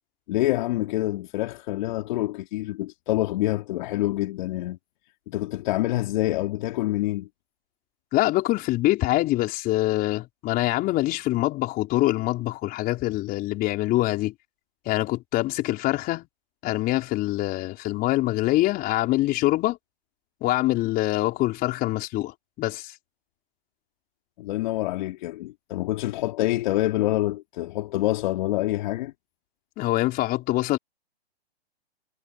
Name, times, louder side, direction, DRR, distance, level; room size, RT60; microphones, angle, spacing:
voice 1, 0.3-4.8 5.3-7.3 24.4-29.1, left 16 dB, 45° left, 3.1 m, -26 dB
voice 2, 8.1-14.3 14.9-16.3 16.6-19.8 20.4-22.9 29.8-30.8, left 17 dB, 30° left, 5.4 m, -24 dB
hypercardioid pair, 135°, 32 cm